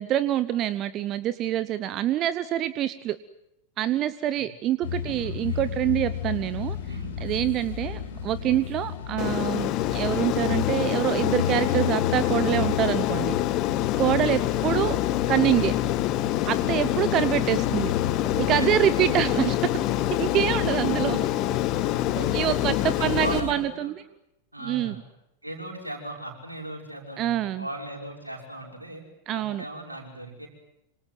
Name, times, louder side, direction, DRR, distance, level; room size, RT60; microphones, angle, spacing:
voice 1, 0.0-3.2 3.8-6.8 7.2-13.4 14.0-15.0 15.3-15.7 16.5-17.9 18.4-19.6 20.2-21.3 22.1-23.9 24.6-25.0 27.2-27.7 29.3-29.6, right 12 dB, 35° right, 16 dB, 0.9 m, -26 dB
sound 1, 4.8-23.5, left 8 dB, 60° left, 5.2 m, -33 dB
voice 2, 4.9-5.7 6.9-7.4 14.0-14.4 18.6-18.7 22.1-22.6 22.9-23.9 24.5-25.0 25.4-29.0 29.3-30.5, right 1 dB, 85° right, 0 dB, 6.0 m, -38 dB
Aircraft, 9.2-23.4, left 16 dB, 40° left, 1.1 m, -26 dB
26.5 x 26.0 x 7.9 m, 0.85 s
figure-of-eight pair, 90°, 0 cm